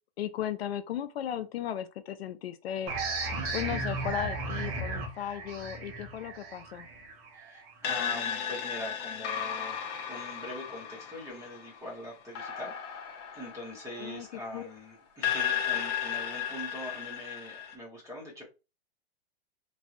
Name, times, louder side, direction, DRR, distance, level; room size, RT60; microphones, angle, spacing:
voice 1, 0.2-2.9 3.5-6.9 14.0-14.3 14.5-14.7, left 10 dB, 70° left, 0.5 m, -36 dB
sound 1, 2.9-8.2, right 3 dB, 35° right, 1.0 m, -35 dB
voice 2, 7.3-13.1 13.3-18.4, left 1 dB, 10° right, 1.0 m, -43 dB
sound 2, 7.8-14.7 15.2-17.7, left 8 dB, 25° left, 0.4 m, -35 dB
3.1 x 2.6 x 2.4 m
hypercardioid pair, 150°, 32 cm